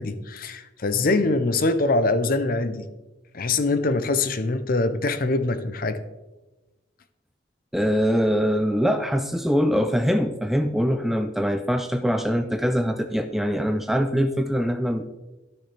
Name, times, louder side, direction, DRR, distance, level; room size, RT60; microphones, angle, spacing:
voice 1, 0.0-2.9 3.3-6.0, left 3 dB, 50° left, 0.6 m, -23 dB
voice 2, 7.7-15.2, equal, ahead, 0.3 m, -23 dB
12.5 x 6.4 x 3.3 m
head